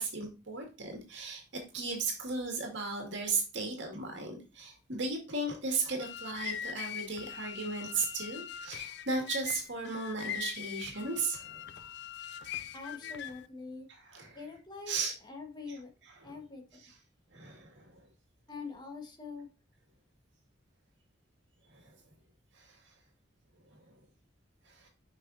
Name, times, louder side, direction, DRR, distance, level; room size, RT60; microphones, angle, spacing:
voice 1, 0.0-11.7 14.0-14.4 14.9-15.1 15.7-15.8 16.2-16.3 16.8-16.9 17.3-18.1 21.7-22.0 22.6-22.8 24.7-24.9, right 3 dB, 70° right, 1 dB, 2.1 m, -36 dB
sound 1, 5.8-13.5, left 9 dB, 65° left, 0.5 m, -42 dB
voice 2, 12.7-13.9 14.3-15.0 15.2-15.9 16.2-16.8 18.5-19.5, left 4 dB, 25° left, 2 dB, 1.5 m, -44 dB
6.8 x 5.8 x 2.7 m, 0.31 s
head